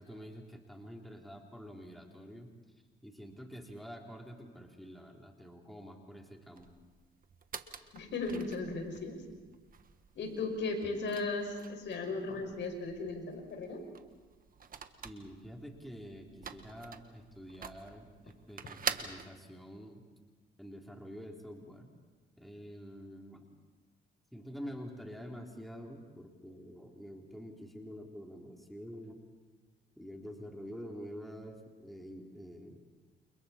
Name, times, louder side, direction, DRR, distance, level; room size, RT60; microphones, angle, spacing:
voice 1, 0.0-2.5 3.0-6.7 15.0-20.1 20.6-21.9 22.4-23.4 24.3-29.2 30.0-32.8, equal, ahead, 0 dB, 3.5 m, -47 dB
sound 1, 6.6-19.3, right 6 dB, 45° right, 1.6 m, -46 dB
voice 2, 7.9-9.2 10.2-13.8, left 3 dB, 65° left, 3 dB, 5.8 m, -36 dB
29.5 x 28.5 x 4.4 m, 1.3 s
cardioid pair, 90°, 20 cm